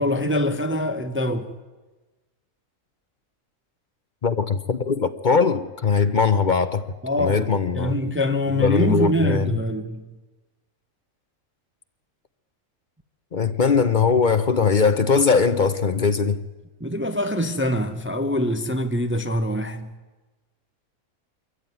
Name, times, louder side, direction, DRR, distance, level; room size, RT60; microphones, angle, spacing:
voice 1, 0.0-1.6 7.0-7.5 7.7-10.0 16.8-19.9, left 1 dB, 10° right, 0.8 m, -24 dB
voice 2, 4.2-6.8 7.2-8.0 8.5-9.5 13.3-16.4, left 5 dB, 40° left, 0.8 m, -20 dB
24.5 x 14.5 x 9.3 m
omnidirectional pair, 1.4 m